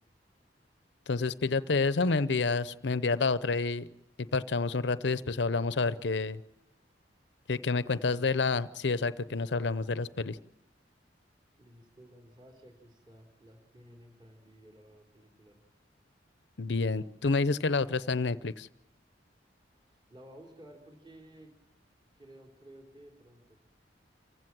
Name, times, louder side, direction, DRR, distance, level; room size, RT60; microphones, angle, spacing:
voice 1, 1.1-3.9 4.2-6.4 7.5-10.4 16.6-18.7, left 4 dB, 70° left, 15 dB, 0.7 m, -29 dB
voice 2, 7.8-8.3 11.6-15.6 19.9-21.5 22.2-23.6, right 1 dB, 25° right, 0 dB, 3.4 m, -54 dB
27.5 x 16.0 x 7.6 m, 0.96 s
head